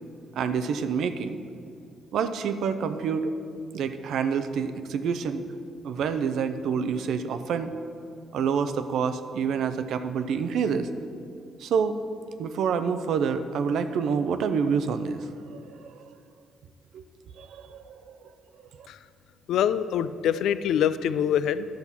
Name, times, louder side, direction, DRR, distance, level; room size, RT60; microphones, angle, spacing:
voice 1, 0.3-1.4 2.1-3.3 3.7-5.4 5.8-7.7 8.3-10.9 11.6-12.0 12.4-16.1 16.9-17.0 17.4-18.3 18.8-18.9, right 6 dB, 75° right, 10 dB, 0.5 m, -28 dB
voice 2, 19.5-21.7, left 9 dB, 80° left, 14 dB, 0.3 m, -24 dB
10.5 x 4.1 x 7.1 m, 2.4 s
cardioid pair, 90°, 0 cm